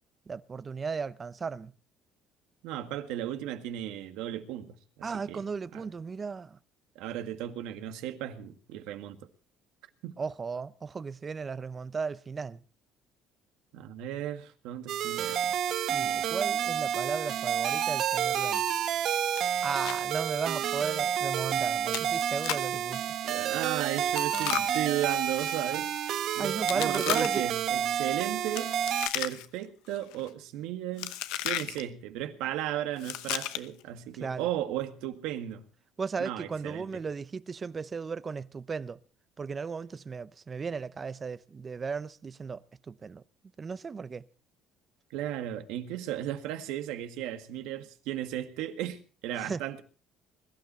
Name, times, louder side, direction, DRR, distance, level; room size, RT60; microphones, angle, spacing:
voice 1, 0.3-1.7 5.0-6.6 10.2-12.6 15.9-18.7 19.6-23.0 26.4-27.4 34.2-34.5 36.0-39.0 39.4-43.2 43.6-44.2 49.4-49.6, right 5 dB, 25° right, 0.7 m, -35 dB
voice 2, 2.6-5.5 5.7-5.9 7.0-9.3 10.0-10.1 13.7-15.6 16.0-16.2 23.2-25.9 26.3-28.7 29.1-35.7 36.2-37.0 45.1-49.8, right 12 dB, 80° right, 1.7 m, -35 dB
sound 1, 14.9-29.1, right 10 dB, 55° right, 0.9 m, -30 dB
Chewing mastication, 19.4-20.0 20.3-20.4 20.9-21.0 21.9-22.8 24.0-25.6 26.6-27.6 28.5-29.6 29.9-30.3 31.0-31.8 33.0-33.8, left 14 dB, 85° left, 0.9 m, -35 dB
22.0 x 12.0 x 4.3 m
cardioid pair, 135°, 0 cm